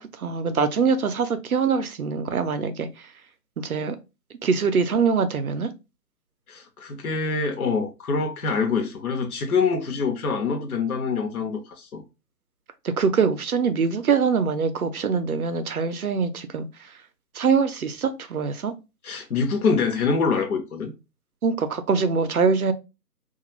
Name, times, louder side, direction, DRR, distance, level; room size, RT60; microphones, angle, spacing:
voice 1, 0.0-2.9 3.6-4.0 4.4-5.7 12.8-16.7 17.3-18.7 21.4-22.7, right 5 dB, 65° right, 0.5 m, -23 dB
voice 2, 6.5-12.0 19.0-20.9, left 4 dB, 60° left, 0.7 m, -25 dB
2.4 x 2.3 x 2.9 m
figure-of-eight pair, 155°, 49 cm